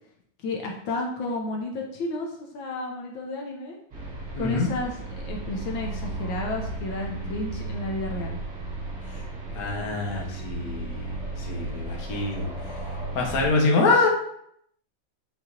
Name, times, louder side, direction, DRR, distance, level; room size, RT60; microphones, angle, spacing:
voice 1, 0.4-3.8 4.4-4.9 5.2-8.4, left 2 dB, 80° left, 0 dB, 1.6 m, -32 dB
sound 1, 3.9-13.5, right 2 dB, 55° right, 2.3 m, -35 dB
voice 2, 4.3-4.7 9.5-12.5 13.1-14.1, left 3 dB, 55° left, -1 dB, 1.5 m, -25 dB
7.9 x 4.5 x 2.7 m, 0.71 s
omnidirectional pair, 2.1 m